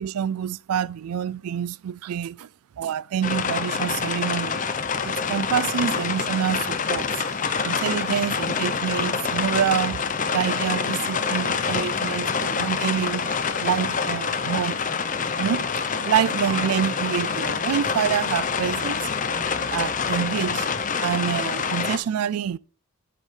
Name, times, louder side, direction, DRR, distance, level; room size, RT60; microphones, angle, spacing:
voice 1, 0.0-2.5 2.8-4.6 5.0-7.1 7.4-10.0 10.3-13.3 13.6-14.8 15.4-15.6 16.0-19.1 19.7-20.7 21.0-22.6, right 8 dB, 90° right, 0.4 m, -27 dB
sound 1, 3.2-22.0, left 5 dB, 35° left, 0.7 m, -26 dB
sound 2, 5.0-19.8, left 2 dB, 70° left, 2.1 m, -47 dB
11.0 x 8.1 x 3.3 m
head